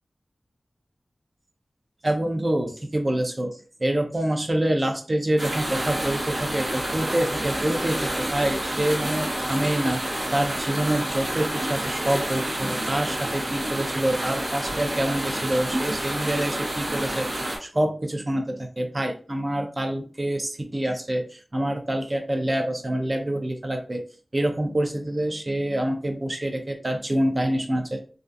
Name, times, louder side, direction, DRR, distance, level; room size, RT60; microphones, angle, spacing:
voice 1, 2.0-3.5 3.8-10.0 10.3-17.3 17.6-24.0 24.3-28.0, right 1 dB, 40° right, 4 dB, 0.5 m, -26 dB
sound 1, 5.4-17.6, right 1 dB, 70° right, 1.0 m, -29 dB
2.3 x 2.3 x 2.5 m, 0.38 s
cardioid pair, 40°, 0 cm